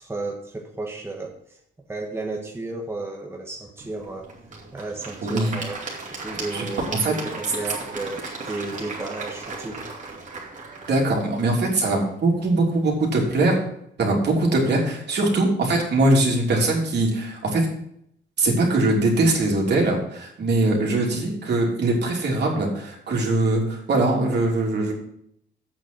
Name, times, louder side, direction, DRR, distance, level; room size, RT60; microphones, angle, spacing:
voice 1, 0.0-1.6 1.9-4.3 4.7-5.8 6.2-9.8, right 2 dB, 10° right, 1 dB, 1.3 m, -33 dB
Applause / Crowd, 3.8-12.8, right 3 dB, 40° right, 2.6 m, -37 dB
voice 2, 5.2-5.5 6.5-6.7 7.0-7.1 10.9-13.6 14.0-17.6 18.4-24.9, right 2 dB, 60° right, -1 dB, 3.1 m, -21 dB
8.2 x 6.5 x 6.0 m, 0.72 s
cardioid pair, 90°, 20 cm